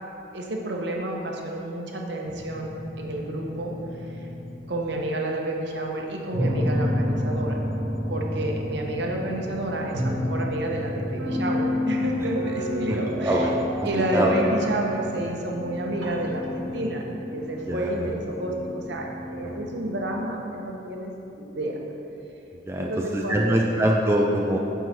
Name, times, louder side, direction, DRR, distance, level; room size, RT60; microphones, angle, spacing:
voice 1, 0.3-2.7 3.0-4.3 4.7-7.6 8.1-13.5 13.8-17.0 17.3-21.1 21.4-21.8 22.8-23.6, right 1 dB, 60° right, 0 dB, 0.9 m, -30 dB
sound 1, 2.2-4.8 6.3-20.2, left 1 dB, 80° right, 1.3 m, -30 dB
voice 2, 13.1-13.5 13.8-14.4 17.7-18.1 19.4-19.6 22.7-24.6, right 1 dB, 15° right, -2 dB, 0.3 m, -24 dB
7.7 x 4.6 x 5.7 m, 3.0 s
head